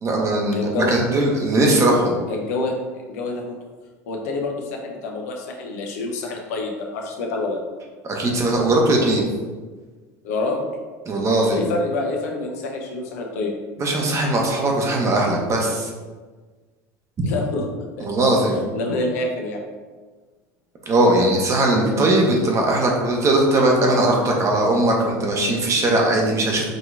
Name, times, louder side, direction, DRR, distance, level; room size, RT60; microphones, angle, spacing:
voice 1, 0.0-2.2 8.0-9.3 11.1-11.6 13.8-15.9 18.0-18.6 20.9-26.6, right 1 dB, 35° right, 0 dB, 1.0 m, -19 dB
voice 2, 0.5-0.9 2.3-2.7 3.1-3.4 4.1-7.6 10.2-10.6 11.5-13.5 17.2-17.7 18.0-18.3 18.7-19.6, left 3 dB, 80° left, 1 dB, 0.8 m, -27 dB
5.2 x 2.9 x 2.5 m, 1.4 s
hypercardioid pair, 90°, 9 cm